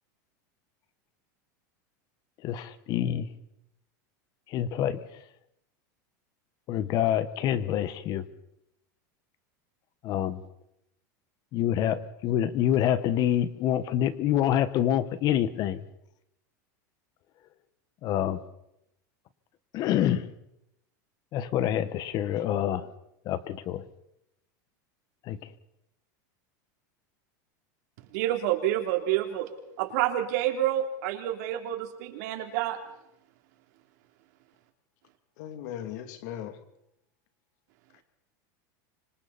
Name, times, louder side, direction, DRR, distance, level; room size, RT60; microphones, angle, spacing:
voice 1, 2.4-3.3 4.5-5.0 6.7-8.2 10.0-10.4 11.5-15.8 18.0-18.4 19.7-20.3 21.3-22.9 23.2-23.8 25.2-25.5, left 11 dB, 40° left, 14 dB, 1.3 m, -26 dB
voice 2, 28.1-29.5 29.8-32.8, right 12 dB, 65° right, 5 dB, 3.3 m, -28 dB
voice 3, 35.4-36.6 37.9-38.0, left 10 dB, 65° left, 7 dB, 2.8 m, -38 dB
26.0 x 25.0 x 4.3 m, 0.83 s
supercardioid pair, 140°, 10 cm